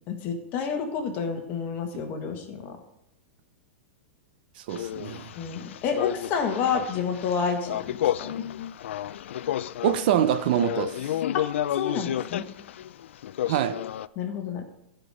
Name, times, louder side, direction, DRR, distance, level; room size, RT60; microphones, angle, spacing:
voice 1, 0.1-2.8 5.4-8.4 11.7-12.4 14.2-14.6, left 6 dB, 30° left, 1.6 m, -29 dB
voice 2, 4.6-5.3 9.8-11.1 13.5-13.8, right 10 dB, 50° right, 0.5 m, -25 dB
sound 1, 4.7-14.1, left 11 dB, 80° left, 0.4 m, -31 dB
14.0 x 5.2 x 5.6 m
supercardioid pair, 165°, 6 cm